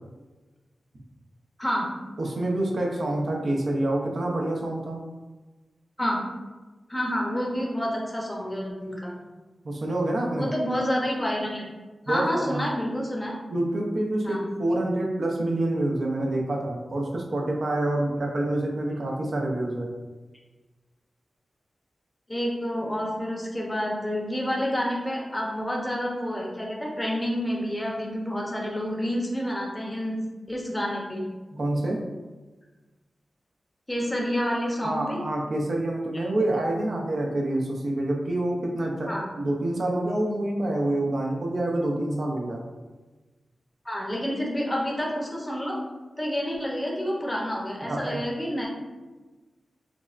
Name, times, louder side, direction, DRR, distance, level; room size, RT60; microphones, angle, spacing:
voice 1, 2.2-5.0 9.6-10.5 12.1-12.7 13.5-19.9 31.5-32.1 34.8-42.6 47.8-48.2, right 1 dB, 60° right, 0 dB, 0.7 m, -27 dB
voice 2, 6.9-9.2 10.4-11.7 12.1-13.3 14.2-14.5 22.3-30.2 30.5-31.2 33.9-35.2 39.1-39.2 43.8-45.8 46.2-48.7, equal, 15° left, -2 dB, 0.8 m, -28 dB
6.1 x 2.1 x 2.5 m, 1.2 s
wide cardioid pair, 90°, 0 cm